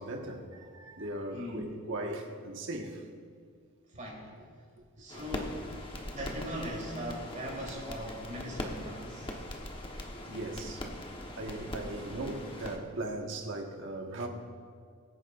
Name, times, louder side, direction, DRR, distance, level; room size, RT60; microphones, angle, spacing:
voice 1, 0.0-3.1 5.1-5.2 10.3-10.9 11.4-14.3, right 1 dB, 60° right, 2 dB, 1.4 m, -38 dB
voice 2, 1.3-1.7 3.9-4.4 5.0-5.8 6.0-9.3, equal, 35° right, -3 dB, 3.4 m, -40 dB
sound 1, 5.1-12.8, left 1 dB, 25° left, 1.1 m, -41 dB
22.5 x 9.7 x 2.5 m, 2.1 s
head